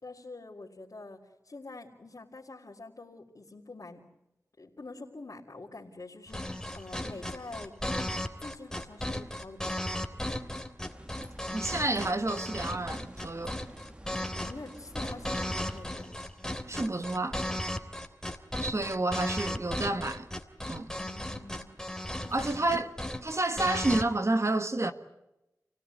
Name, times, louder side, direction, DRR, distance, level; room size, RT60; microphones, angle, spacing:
voice 1, 0.0-4.0 4.6-7.7 8.4-10.1 14.4-16.1 21.0-21.7 22.2-22.5 23.5-23.7, left 3 dB, 65° left, 3.5 m, -46 dB
sound 1, 6.3-24.0, left 1 dB, 10° left, 3.0 m, -35 dB
sound 2, 10.8-15.8, right 1 dB, 15° right, 2.1 m, -50 dB
voice 2, 11.5-13.6 16.7-17.4 18.6-20.2 20.7-20.9 22.3-22.9 23.2-24.9, right 2 dB, 50° right, 1.7 m, -29 dB
29.0 x 17.5 x 9.4 m
wide cardioid pair, 45°, 6 cm